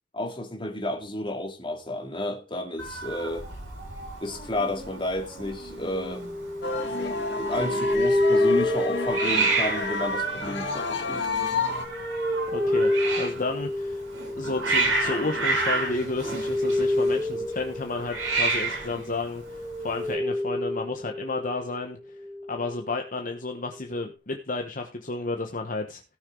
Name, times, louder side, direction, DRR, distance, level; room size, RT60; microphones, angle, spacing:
voice 1, 0.1-3.5 4.2-6.3 6.7-11.3, left 1 dB, 25° left, 2.2 m, -32 dB
Hiss, 2.8-20.1, right 3 dB, 75° right, 7.7 m, -31 dB
sound 1, 5.5-21.7 22.1-22.9, left 1 dB, 15° right, 2.4 m, -29 dB
sound 2, 6.6-11.8, left 3 dB, 65° left, 2.5 m, -30 dB
voice 2, 12.5-14.1 14.4-22.2 22.5-26.0, left 3 dB, 45° left, 1.1 m, -32 dB
17.5 x 6.2 x 3.8 m
head